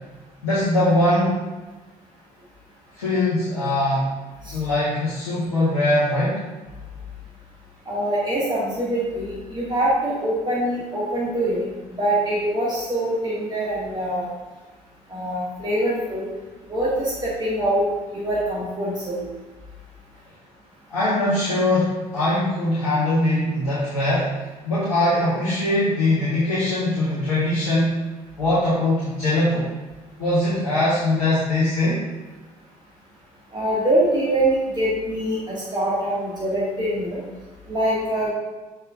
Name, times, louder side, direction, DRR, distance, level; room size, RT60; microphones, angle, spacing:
voice 1, 0.4-1.4 3.0-4.1 4.5-6.4 20.9-24.3 24.6-27.9 28.4-29.6 30.2-32.0, left 1 dB, 75° left, -11 dB, 1.4 m, -21 dB
voice 2, 7.9-14.3 15.1-16.3 16.7-17.9 18.1-19.2 33.5-37.2 37.7-38.3, right 1 dB, 25° right, -7 dB, 1.9 m, -24 dB
6.7 x 5.7 x 2.5 m, 1.2 s
figure-of-eight pair, 50°, 18 cm